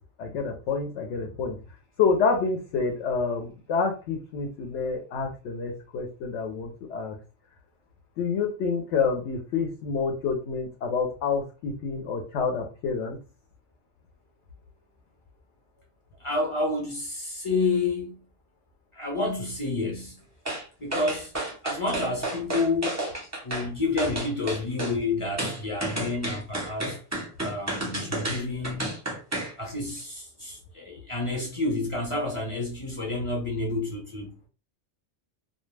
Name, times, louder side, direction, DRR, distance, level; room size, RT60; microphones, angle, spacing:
voice 1, 0.2-1.6 2.0-7.2 8.2-13.2, left 5 dB, 65° left, 0.8 m, -28 dB
voice 2, 16.2-18.2 18.9-20.2 20.8-21.3 21.6-23.0 23.4-27.0 27.4-28.9 29.6-34.5, left 3 dB, 35° left, 0.5 m, -29 dB
sound 1, 20.5-20.6 20.9-23.7 24.0-25.0 25.4-29.5 29.9-30.0, right 1 dB, 20° right, 0.5 m, -31 dB
2.2 x 2.1 x 3.1 m
omnidirectional pair, 1.4 m